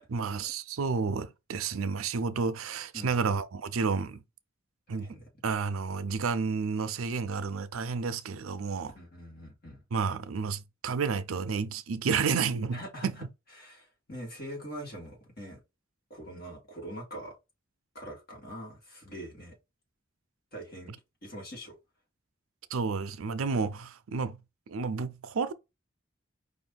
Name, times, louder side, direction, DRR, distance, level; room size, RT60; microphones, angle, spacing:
voice 1, 0.1-4.2 4.9-5.2 5.4-8.9 9.9-13.1 22.7-24.4 24.7-25.5, right 5 dB, 90° right, 0.5 m, -31 dB
voice 2, 5.0-5.3 8.9-9.8 12.7-13.1 13.6-15.6 16.1-17.3 17.9-19.6 20.5-20.9 21.2-21.8, equal, 45° left, 2.3 m, -43 dB
5.0 x 2.7 x 3.9 m
head